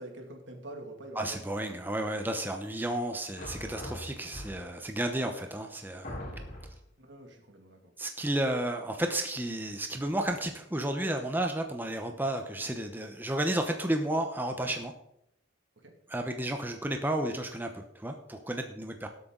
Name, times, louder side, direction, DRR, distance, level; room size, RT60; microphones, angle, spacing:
voice 1, 0.0-1.5 7.0-7.9 15.8-15.9, right 1 dB, 70° right, 3 dB, 2.4 m, -46 dB
voice 2, 1.2-6.2 8.0-14.9 16.1-19.1, right 1 dB, 10° right, 4 dB, 0.9 m, -32 dB
sound 1, 3.4-4.9 5.5-5.6 6.0-6.9, equal, 45° left, 3.5 m, -41 dB
18.5 x 8.1 x 3.9 m, 0.76 s
head